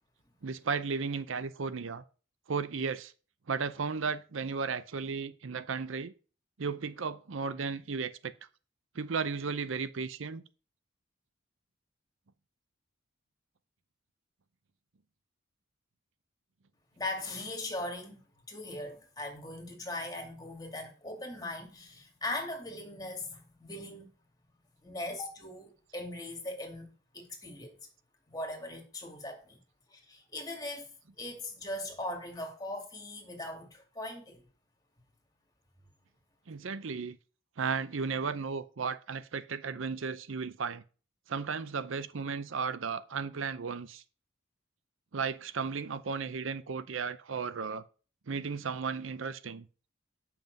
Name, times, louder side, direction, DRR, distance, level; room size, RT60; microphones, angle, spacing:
voice 1, 0.4-2.0 2.5-3.1 3.5-6.1 6.6-8.3 8.9-10.4 36.5-37.2 37.6-40.8 41.3-44.0 45.1-47.8 48.3-49.7, right 5 dB, 75° right, 0.6 m, -34 dB
voice 2, 17.0-18.2 18.5-24.1 24.8-27.8 28.3-29.6 29.9-30.9 31.2-34.4, left 1 dB, 20° left, 2.3 m, -40 dB
8.9 x 5.9 x 5.3 m
head